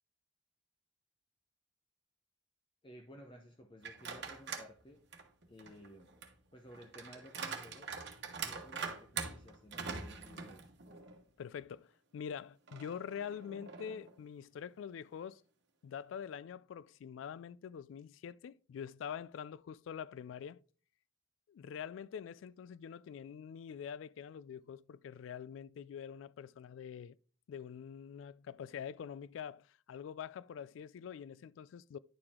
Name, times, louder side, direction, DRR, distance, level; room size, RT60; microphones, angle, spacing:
voice 1, 2.8-5.0 5.5-6.2 6.5-8.0 8.4-10.6, equal, 25° left, 0.8 m, -55 dB
Wooden door unlocking with a key, 3.8-4.7 5.1-11.2 11.6-11.7 12.7-14.1, right 5 dB, 65° right, 1.2 m, -44 dB
voice 2, 11.4-15.4 15.8-20.6 21.5-27.2 27.5-32.0, left 8 dB, 85° left, 0.3 m, -45 dB
10.5 x 4.8 x 3.6 m
head